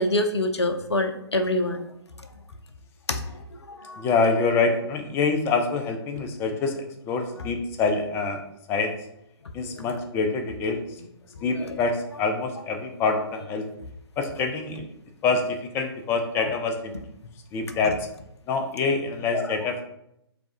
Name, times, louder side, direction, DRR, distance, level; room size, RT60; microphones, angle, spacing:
voice 1, 0.0-1.8 3.1-4.1 7.4-7.5 9.7-9.9 11.4-11.8 17.7-17.8 19.3-19.5, left 1 dB, 85° left, 6 dB, 0.5 m, -27 dB
voice 2, 4.0-8.4 8.7-8.9 9.5-10.8 11.4-13.6 14.2-14.8 15.2-17.0 17.5-18.0 18.5-19.8, left 4 dB, 15° left, 5 dB, 0.5 m, -25 dB
3.5 x 3.3 x 3.6 m, 0.79 s
figure-of-eight pair, 125°, 14 cm